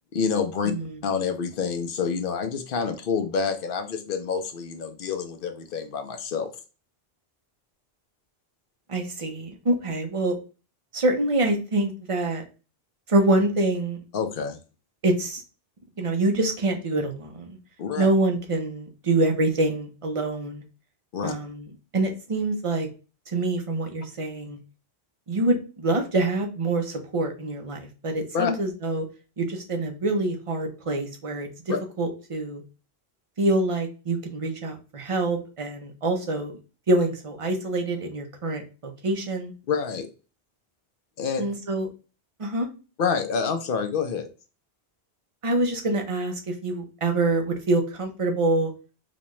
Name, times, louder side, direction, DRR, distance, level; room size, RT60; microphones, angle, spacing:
voice 1, 0.1-0.7 1.0-6.5 14.1-14.6 17.8-18.1 21.1-21.3 28.3-28.5 31.7-31.8 39.7-40.1 41.2-41.4 43.0-44.3, left 6 dB, 65° left, 7 dB, 0.8 m, -27 dB
voice 2, 0.6-1.0 8.9-10.3 10.9-12.4 13.1-14.0 15.0-15.4 16.0-17.6 18.0-20.6 21.2-21.7 21.9-22.9 23.3-24.6 25.3-29.1 29.4-32.6 33.4-36.5 36.9-39.5 41.4-41.9 42.4-42.7 45.4-48.7, right 2 dB, 35° right, 4 dB, 0.7 m, -25 dB
4.1 x 2.3 x 3.0 m, 0.33 s
omnidirectional pair, 1.0 m